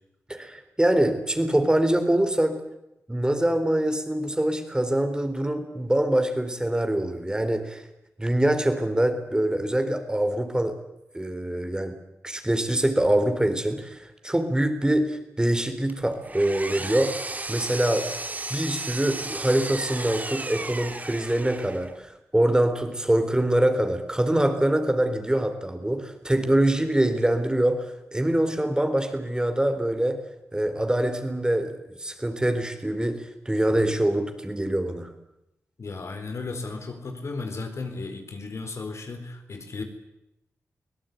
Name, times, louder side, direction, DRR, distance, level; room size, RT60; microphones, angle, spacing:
voice 1, 0.3-2.6 3.1-7.8 8.2-10.7 11.1-11.9 12.2-17.2 17.5-18.1 18.5-30.2 30.5-35.1, right 1 dB, 15° right, 8 dB, 4.0 m, -24 dB
Power tool, 15.9-22.0, right 2 dB, 30° right, 2.2 m, -34 dB
voice 2, 35.8-39.8, left 3 dB, 60° left, 6 dB, 4.1 m, -35 dB
24.5 x 17.5 x 9.4 m, 0.88 s
cardioid pair, 55°, 5 cm